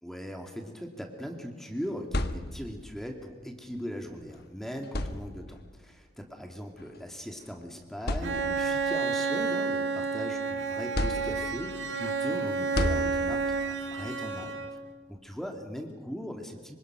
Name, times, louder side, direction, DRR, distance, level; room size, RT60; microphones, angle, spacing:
voice 1, 0.0-14.5 15.1-16.7, equal, ahead, 2 dB, 2.4 m, -39 dB
sound 1, 1.8-2.9 4.2-4.3 4.8-5.7 6.8-7.0 7.5-7.6 8.0-8.8 9.3-10.4 10.9-11.8 12.7-13.6, left 1 dB, 60° left, 1.4 m, -33 dB
Bowed string instrument, 8.2-14.9, right 4 dB, 75° right, 2.1 m, -30 dB
26.0 x 25.5 x 6.2 m, 1.4 s
head